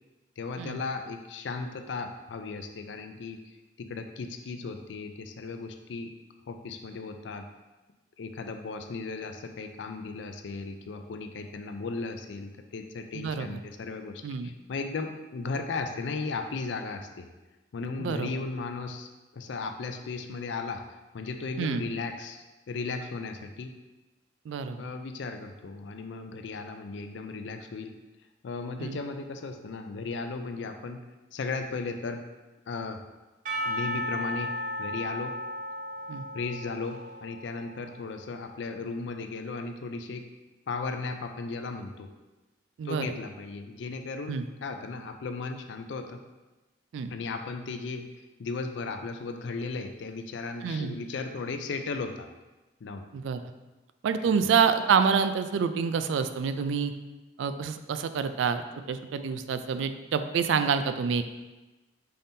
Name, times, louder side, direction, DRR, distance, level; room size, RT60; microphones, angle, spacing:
voice 1, 0.4-6.1 6.5-7.5 8.2-17.3 17.7-20.8 21.1-23.8 24.8-27.9 28.4-31.0 31.3-32.2 32.7-33.0 33.7-34.5 34.8-35.3 36.3-40.2 40.7-42.1 42.8-46.2 47.1-48.1 48.4-52.3 52.8-53.1 54.3-54.5, left 4 dB, 70° left, 6 dB, 0.4 m, -36 dB
voice 2, 13.1-13.6 14.2-14.5 18.0-18.4 21.6-21.8 24.5-24.9 28.8-29.0 36.1-36.2 42.8-43.1 44.3-44.4 46.9-47.1 50.6-51.0 53.1-53.4 54.0-56.9 57.4-61.2, right 6 dB, 80° right, 10 dB, 0.3 m, -27 dB
Percussion / Church bell, 33.5-38.2, equal, 40° right, 0.6 m, -35 dB
5.6 x 3.5 x 2.6 m, 1.1 s
head